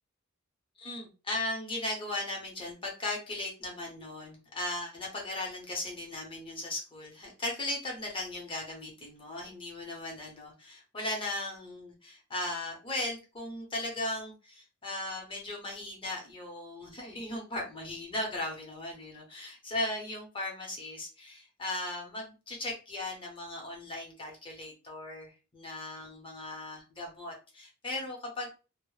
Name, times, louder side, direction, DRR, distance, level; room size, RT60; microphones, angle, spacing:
voice 1, 0.8-28.5, left 2 dB, 25° left, -1 dB, 0.7 m, -37 dB
2.1 x 2.0 x 3.0 m, 0.32 s
head